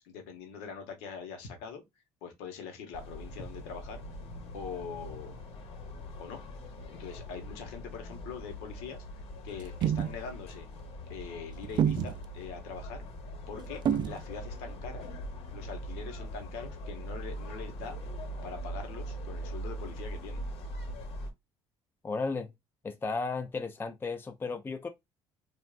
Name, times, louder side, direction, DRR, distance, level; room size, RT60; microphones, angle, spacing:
voice 1, 0.0-1.8 2.2-4.0 4.5-5.4 6.2-6.4 6.9-10.7 11.1-13.0 13.5-15.1 15.5-18.0 18.4-20.4, left 6 dB, 90° left, 0.9 m, -43 dB
sound 1, 2.9-21.3, equal, 65° left, 1.1 m, -42 dB
sound 2, 9.6-10.2 11.6-12.3 13.9-14.2, right 9 dB, 45° right, 0.3 m, -28 dB
voice 2, 22.0-22.5 22.8-24.9, left 4 dB, 20° left, 0.5 m, -34 dB
3.4 x 2.4 x 2.3 m
supercardioid pair, 90°, 11 cm